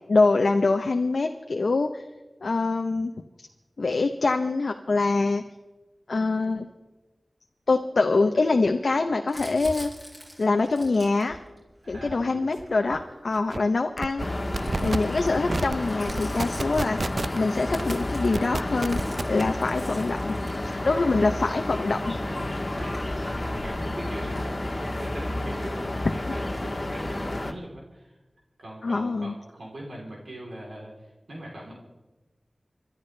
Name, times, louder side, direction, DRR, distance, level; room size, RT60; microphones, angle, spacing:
voice 1, 0.1-2.0 2.4-3.1 3.8-5.4 6.1-6.7 7.7-9.9 10.4-11.4 11.9-14.2 14.8-17.1 17.3-19.0 19.3-22.2 28.8-29.3, left 3 dB, 80° left, 5 dB, 0.7 m, -24 dB
Crumpling crinkling, 9.3-13.3 14.0-21.1 22.0-22.1 22.2-23.8, equal, 15° right, 5.6 m, -45 dB
voice 2, 11.8-12.4 14.6-14.9 20.4-20.5 20.9-21.0 22.2-28.2 28.6-30.9 31.3-31.7, right 1 dB, 85° right, -2 dB, 3.4 m, -41 dB
sound 1, 12.9-13.0 13.3-13.6 14.0-14.3 14.5-15.0 15.5-15.7 16.1-17.4 17.7-17.9 18.3-19.4, right 3 dB, 60° right, 0.4 m, -29 dB
Street Ambience Morocco, 14.2-27.5, left 1 dB, 40° left, 1.4 m, -31 dB
28.0 x 12.0 x 3.3 m, 1.1 s
cardioid pair, 45°, 0 cm